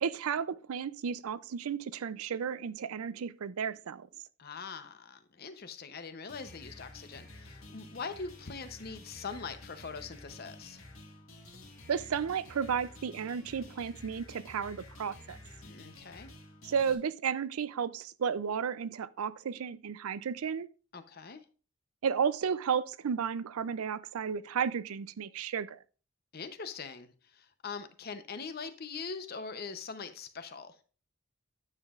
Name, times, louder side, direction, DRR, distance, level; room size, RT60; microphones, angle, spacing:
voice 1, 0.0-4.1 11.9-15.4 16.6-20.7 22.0-25.8, right 7 dB, 85° right, 0.4 m, -33 dB
voice 2, 4.4-10.8 15.6-16.3 20.9-21.4 26.3-30.8, left 5 dB, 45° left, 0.7 m, -42 dB
sound 1, 6.3-16.9, left 1 dB, 70° left, 1.9 m, -51 dB
9.7 x 7.4 x 2.4 m
head